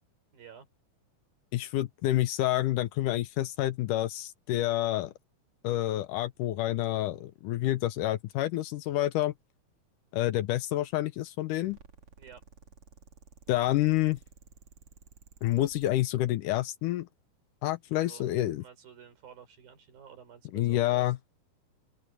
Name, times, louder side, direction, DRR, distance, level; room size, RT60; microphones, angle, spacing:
voice 1, 0.3-0.7 12.2-12.4 18.0-21.1, right 8 dB, 80° right, 6.1 m, -51 dB
voice 2, 1.5-5.1 5.6-9.3 10.1-11.8 13.5-14.2 15.4-17.1 17.6-18.6 20.5-21.2, left 14 dB, 75° left, 2.1 m, -28 dB
sound 1, 11.6-15.9, right 5 dB, 45° right, 2.4 m, -55 dB
open air
omnidirectional pair, 4.1 m